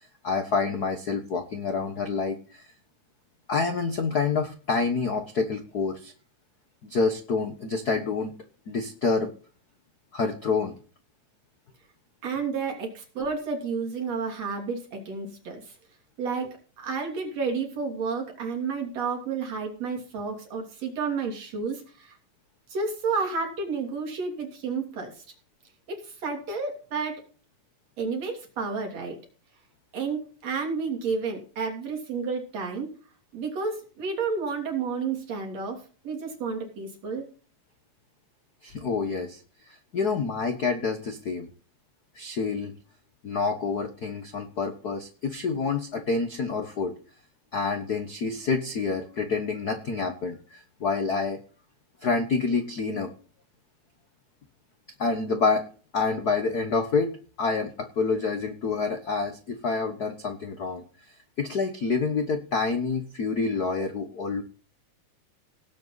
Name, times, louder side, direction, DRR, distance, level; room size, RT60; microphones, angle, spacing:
voice 1, 0.2-2.7 3.5-6.1 6.8-8.3 8.7-9.3 10.1-10.7 38.6-39.4 39.9-41.5 42.1-42.7 43.2-46.9 47.5-51.4 52.0-53.1 55.0-55.6 55.9-57.1 57.4-60.8 61.4-64.4, left 4 dB, 70° left, 7 dB, 0.9 m, -27 dB
voice 2, 12.2-15.6 16.2-22.2 22.7-25.2 25.9-27.2 28.0-29.2 29.9-32.9 33.3-37.3, right 5 dB, 55° right, 1 dB, 4.1 m, -31 dB
18.0 x 8.1 x 4.0 m, 0.39 s
omnidirectional pair, 3.7 m